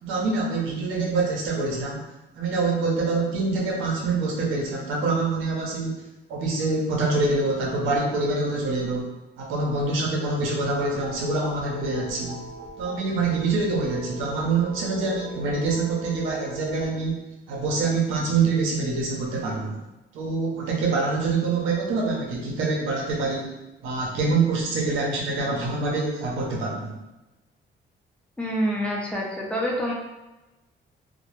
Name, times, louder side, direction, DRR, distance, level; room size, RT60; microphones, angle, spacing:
voice 1, 0.0-2.1 2.3-6.0 6.3-9.1 9.4-12.4 12.8-19.8 20.1-23.5 23.8-27.0, right 3 dB, 90° right, -2 dB, 0.6 m, -25 dB
sound 1, 10.7-16.9, right 3 dB, 40° right, 0.4 m, -39 dB
voice 2, 28.4-29.9, equal, 5° left, -3 dB, 0.6 m, -26 dB
2.1 x 2.0 x 3.0 m, 1.0 s
cardioid pair, 90°, 20 cm